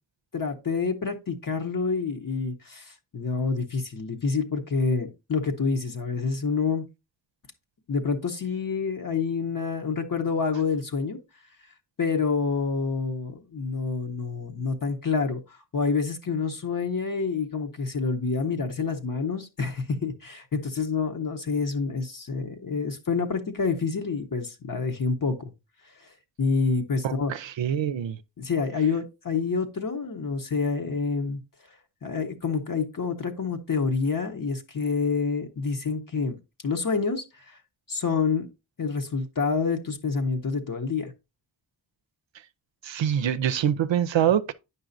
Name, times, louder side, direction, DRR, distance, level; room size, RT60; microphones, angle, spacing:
voice 1, 0.3-6.8 7.9-11.2 12.0-25.5 26.4-27.3 28.4-31.4 32.0-36.4 36.6-37.6 37.9-38.5 38.8-41.1, left 4 dB, 45° left, 1.0 m, -27 dB
voice 2, 27.0-28.2 42.8-44.5, right 9 dB, 70° right, 0.6 m, -25 dB
8.9 x 5.5 x 2.6 m
cardioid pair, 70°, 46 cm